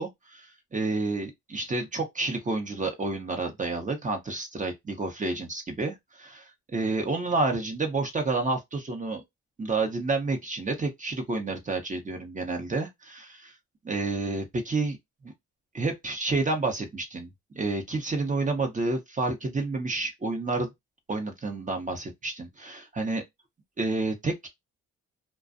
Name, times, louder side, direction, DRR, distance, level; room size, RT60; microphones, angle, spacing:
voice 1, 0.0-9.2 9.6-13.5 13.8-15.0 15.7-17.3 17.5-20.7 21.1-23.2 23.8-24.5, right 3 dB, 25° right, 0.8 m, -29 dB
2.5 x 2.2 x 2.5 m
cardioid pair, 90°, 30 cm